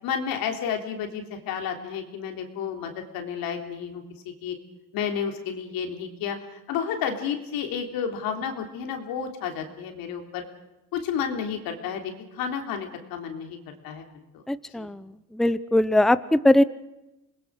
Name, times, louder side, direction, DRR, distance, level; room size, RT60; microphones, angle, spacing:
voice 1, 0.0-4.5 4.9-6.4 6.7-10.4 10.9-14.4 14.7-14.9, left 7 dB, 90° left, 4 dB, 3.5 m, -31 dB
voice 2, 14.5-15.0 15.3-16.6, left 1 dB, ahead, 15 dB, 0.8 m, -20 dB
27.0 x 20.5 x 6.5 m, 0.96 s
cardioid pair, 95°, 34 cm